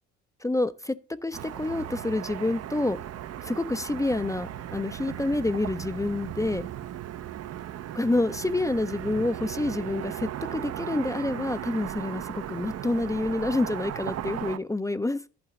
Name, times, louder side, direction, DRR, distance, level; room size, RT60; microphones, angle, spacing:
voice 1, 0.4-0.9 1.2-3.0 3.4-6.7 7.9-15.2, left 2 dB, 10° left, 0.5 m, -28 dB
Car passing by / Traffic noise roadway noise, 1.3-14.6, right 11 dB, 55° right, 0.6 m, -37 dB
11.5 x 3.8 x 7.0 m
cardioid pair, 90°, 30 cm